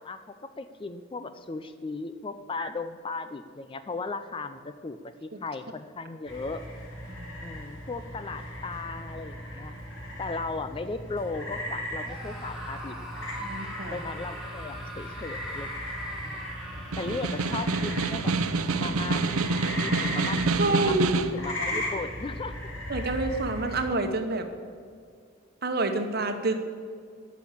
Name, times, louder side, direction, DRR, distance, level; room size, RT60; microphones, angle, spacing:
voice 1, 0.0-6.6 7.4-9.7 10.2-13.0 13.9-15.7 16.2-16.5 17.0-18.3 18.8-19.4 19.8-22.5, left 3 dB, 25° left, 10 dB, 0.4 m, -36 dB
sound 1, 6.3-23.9, left 1 dB, 60° left, 3.7 m, -37 dB
Screaming, 12.0-18.5, right 1 dB, ahead, 2.2 m, -42 dB
voice 2, 13.4-14.0 20.6-21.1 21.7-21.8 22.9-24.5 25.6-26.5, right 2 dB, 45° right, 7 dB, 1.1 m, -28 dB
Snare drum, 16.8-21.4, right 3 dB, 80° right, 0.7 m, -27 dB
11.5 x 6.3 x 8.5 m, 2.2 s
head